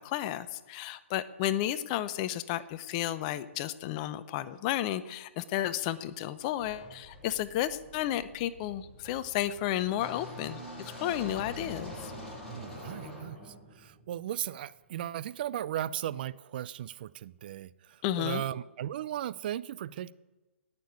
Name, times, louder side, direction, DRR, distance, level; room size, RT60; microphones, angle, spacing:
voice 1, 0.0-12.1 18.0-18.4, left 12 dB, 35° left, 0.8 m, -32 dB
sound 1, 6.6-14.6, left 1 dB, 5° left, 6.6 m, -45 dB
voice 2, 12.5-20.1, right 11 dB, 45° right, 0.5 m, -37 dB
18.0 x 7.0 x 8.4 m
figure-of-eight pair, 125°, 7 cm